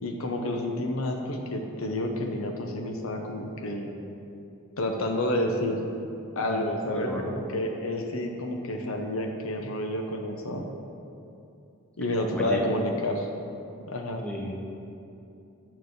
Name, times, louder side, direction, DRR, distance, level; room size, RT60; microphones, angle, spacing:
voice 1, 0.0-3.9 4.8-5.9 6.4-10.7 12.0-13.3 13.9-14.3, left 1 dB, 70° left, 3 dB, 0.8 m, -29 dB
voice 2, 6.3-7.4 12.3-12.7 14.2-14.5, equal, 5° left, -2 dB, 0.9 m, -35 dB
7.7 x 4.7 x 6.5 m, 2.7 s
head